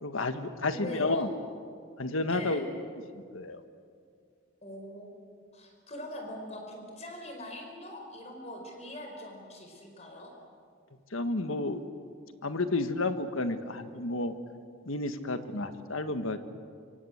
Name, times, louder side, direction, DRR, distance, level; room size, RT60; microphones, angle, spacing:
voice 1, 0.0-1.3 2.0-2.7 3.3-3.6 11.1-11.8 12.4-14.3 14.9-16.4, left 2 dB, 85° left, 9 dB, 1.6 m, -31 dB
voice 2, 0.7-1.3 2.3-2.7 4.6-5.2 5.5-10.3, left 1 dB, 30° left, 3 dB, 4.7 m, -42 dB
25.0 x 24.5 x 8.1 m, 2.3 s
head